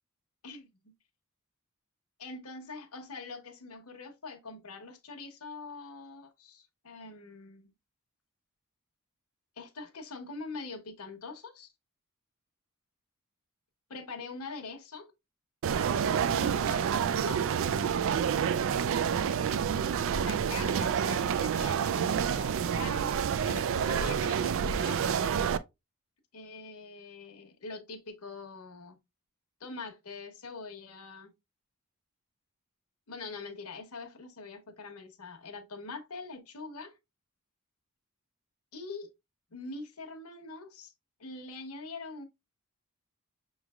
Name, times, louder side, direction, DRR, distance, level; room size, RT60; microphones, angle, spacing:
voice 1, 2.2-7.7 9.6-11.7 13.9-15.1 15.8-16.9 17.1-18.4 20.1-25.1 26.3-29.0 29.6-31.3 33.1-36.9 38.7-39.1 39.5-40.9 41.2-42.3, left 3 dB, 70° left, 1.0 m, -44 dB
sound 1, 15.6-25.6, right 7 dB, 60° right, 0.3 m, -28 dB
6.2 x 3.2 x 2.3 m
head